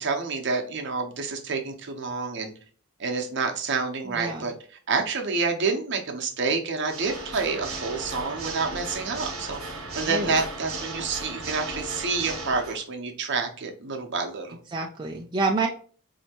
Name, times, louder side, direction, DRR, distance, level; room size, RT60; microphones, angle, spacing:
voice 1, 0.0-2.5 3.0-4.5 4.9-9.6 9.9-14.6, right 4 dB, 55° right, 3 dB, 0.7 m, -28 dB
voice 2, 4.0-4.5 10.1-10.4 14.7-15.7, right 3 dB, 20° right, 0 dB, 0.3 m, -28 dB
Water / Mechanisms, 6.8-12.8, right 2 dB, 75° right, 1.0 m, -36 dB
4.3 x 2.8 x 2.8 m, 0.42 s
head